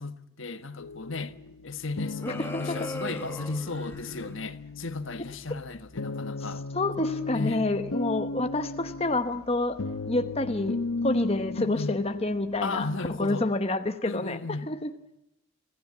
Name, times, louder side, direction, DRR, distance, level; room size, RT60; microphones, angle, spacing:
voice 1, 0.0-1.4 1.6-6.7 7.3-7.7 11.5-11.9 12.6-13.5 14.0-14.7, left 3 dB, 60° left, 1.4 m, -35 dB
sound 1, 0.8-13.1, left 3 dB, 85° left, 1.0 m, -36 dB
sound 2, 2.2-4.3, left 1 dB, 10° left, 1.6 m, -38 dB
voice 2, 2.3-2.9 6.7-9.8 10.1-10.8 11.0-12.9 13.2-14.4 14.7-14.9, left 2 dB, 25° left, 1.0 m, -28 dB
26.5 x 17.5 x 8.6 m
head